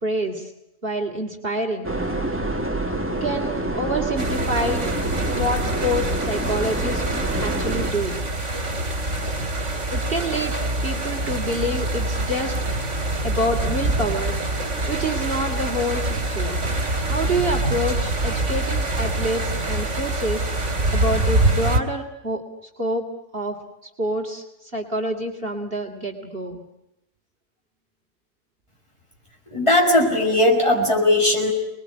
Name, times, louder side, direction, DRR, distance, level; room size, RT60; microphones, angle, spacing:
voice 1, 0.0-0.5 0.8-1.9 3.2-4.9 5.3-7.0 7.4-8.2 9.9-10.5 10.8-12.5 13.2-14.3 14.9-16.6 17.0-20.5 20.9-22.4 22.8-23.0 23.3-23.6 23.8-26.6, equal, 45° right, 3 dB, 3.2 m, -27 dB
sound 1, 1.8-7.9, right 2 dB, 10° right, 2.3 m, -27 dB
sound 2, 4.2-21.8, right 2 dB, 60° right, 3.2 m, -25 dB
voice 2, 29.5-31.5, left 1 dB, 20° left, 0 dB, 7.2 m, -18 dB
29.0 x 21.0 x 9.8 m, 0.84 s
omnidirectional pair, 1.4 m